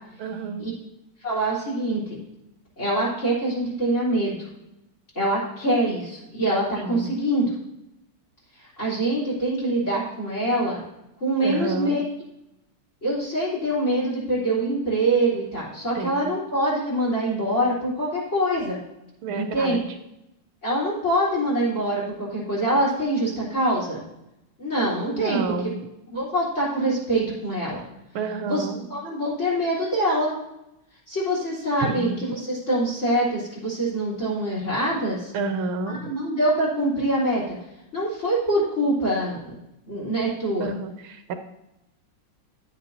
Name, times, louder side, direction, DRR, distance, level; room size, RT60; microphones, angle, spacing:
voice 1, 0.2-0.7 6.7-7.1 11.4-12.0 15.9-16.3 19.2-19.8 25.1-25.8 28.1-28.8 31.8-32.2 35.3-36.1 40.6-41.4, right 4 dB, 80° right, 7 dB, 1.6 m, -30 dB
voice 2, 1.2-2.0 2.8-4.4 5.2-7.5 8.8-10.8 11.2-12.0 13.0-18.8 19.3-19.8 20.6-24.0 24.6-25.4 26.1-27.8 28.5-28.6 28.9-30.3 31.1-35.3 35.9-37.6 37.9-39.5 39.9-40.7, right 1 dB, 35° left, -5 dB, 4.0 m, -24 dB
10.5 x 9.5 x 2.8 m, 0.87 s
omnidirectional pair, 2.3 m